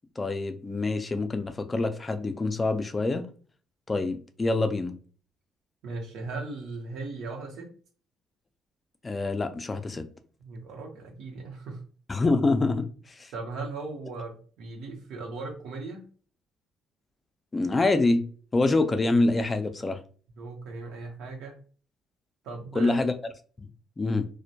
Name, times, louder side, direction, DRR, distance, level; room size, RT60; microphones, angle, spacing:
voice 1, 0.2-3.3 3.9-5.0 9.0-10.1 12.1-12.9 13.2-13.3 17.5-18.2 18.5-20.0 22.7-23.1 24.0-24.3, left 2 dB, 25° left, 0.4 m, -25 dB
voice 2, 5.8-7.7 10.4-11.8 13.3-16.0 20.4-21.6 22.4-23.0, right 3 dB, 85° right, 0.7 m, -38 dB
2.1 x 2.1 x 2.7 m
cardioid pair, 90°, 0 cm